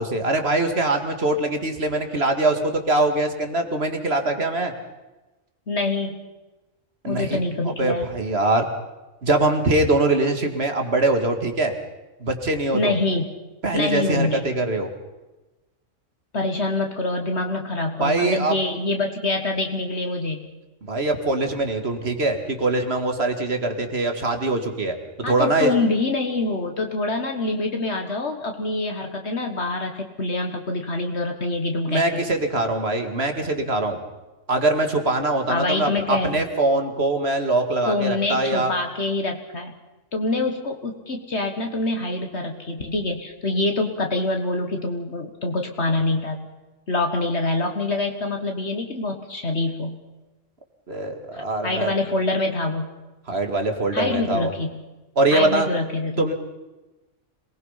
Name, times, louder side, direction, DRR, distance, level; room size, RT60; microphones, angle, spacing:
voice 1, 0.0-4.7 7.0-7.4 7.8-8.7 9.2-11.7 12.2-13.0 13.6-14.9 18.0-18.6 20.8-25.0 25.3-25.7 31.9-34.0 34.5-38.7 50.9-51.9 53.3-54.5 55.2-55.7 56.2-56.3, right 2 dB, 55° right, 6 dB, 2.4 m, -22 dB
voice 2, 5.7-6.2 7.1-8.1 12.7-13.3 13.7-14.4 16.3-20.5 25.2-32.2 35.5-36.4 37.9-39.7 40.1-46.4 46.9-50.0 51.3-52.9 53.9-54.8 55.3-56.3, left 2 dB, 60° left, 3 dB, 1.9 m, -25 dB
26.5 x 19.5 x 5.8 m, 1.1 s
omnidirectional pair, 1.3 m